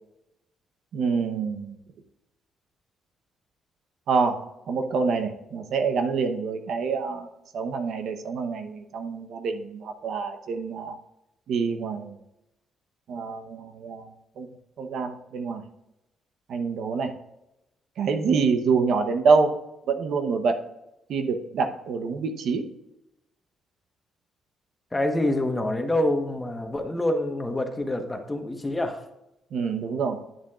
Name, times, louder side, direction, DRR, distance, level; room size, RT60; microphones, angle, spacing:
voice 1, 0.9-1.7 4.1-7.3 7.5-10.9 11.5-12.1 13.1-14.5 14.8-15.6 16.5-17.1 18.0-19.6 19.9-20.6 21.1-22.6 29.5-30.2, right 5 dB, 70° right, 6 dB, 0.9 m, -26 dB
voice 2, 24.9-29.0, left 1 dB, 15° left, 5 dB, 1.2 m, -26 dB
10.5 x 7.2 x 2.4 m, 0.89 s
cardioid pair, 90°, 0 cm